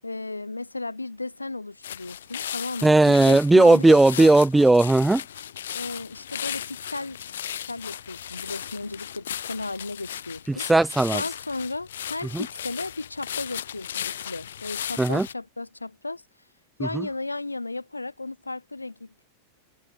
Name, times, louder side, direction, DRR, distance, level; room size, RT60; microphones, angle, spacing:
voice 1, 0.0-4.4 5.7-7.2 7.7-10.7 11.1-16.2 16.8-19.2, left 2 dB, 80° left, 7.6 m, -34 dB
sound 1, 1.8-15.3, left 10 dB, 65° left, 3.7 m, -36 dB
voice 2, 2.8-5.2 10.5-11.2 12.3-12.5 15.0-15.3 16.8-17.1, right 2 dB, 5° right, 0.7 m, -17 dB
figure-of-eight pair, 90°, 0 cm